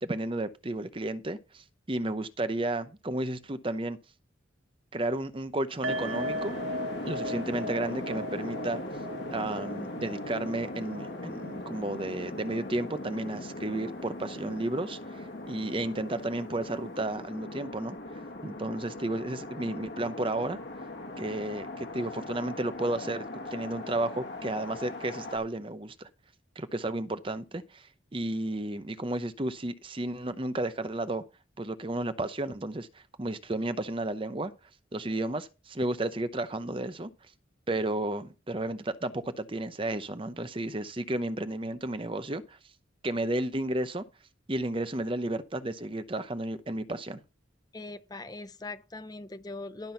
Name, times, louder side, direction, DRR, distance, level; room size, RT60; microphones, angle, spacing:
voice 1, 0.0-4.0 4.9-6.8 7.0-8.8 9.3-18.0 18.4-20.6 21.2-26.1 26.6-27.9 28.1-31.2 31.6-34.5 34.9-37.1 37.7-42.6 43.0-44.0 44.5-47.2, right 1 dB, 25° right, 0.7 m, -33 dB
sound 1, 5.8-25.4, left 1 dB, 60° left, 1.9 m, -39 dB
sound 2, 5.8-13.0 13.3-13.5 13.9-14.0, equal, 85° right, 1.2 m, -39 dB
voice 2, 47.7-49.9, left 2 dB, 20° left, 0.6 m, -41 dB
12.0 x 6.1 x 5.5 m
head